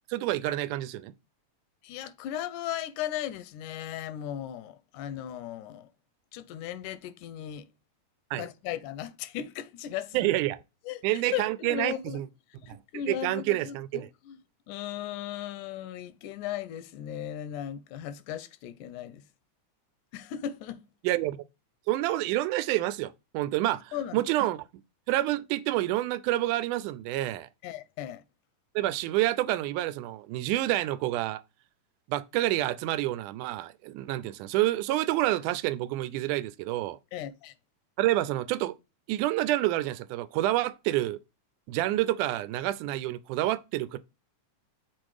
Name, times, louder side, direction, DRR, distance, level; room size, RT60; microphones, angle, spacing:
voice 1, 0.1-1.1 8.3-8.5 10.1-10.6 11.0-12.3 12.7-12.8 13.1-14.1 21.0-21.4 21.9-24.6 25.1-27.5 28.8-31.4 32.1-37.0 38.0-38.8 39.1-41.2 41.7-44.0, right 15 dB, 85° right, 2.1 m, -28 dB
voice 2, 1.8-5.9 6.3-7.7 8.3-10.3 10.9-12.2 12.6-14.4 14.7-19.2 20.1-20.9 23.9-24.2 27.6-28.2 37.1-37.5, left 11 dB, 85° left, 2.1 m, -37 dB
6.1 x 4.4 x 4.8 m
omnidirectional pair, 3.5 m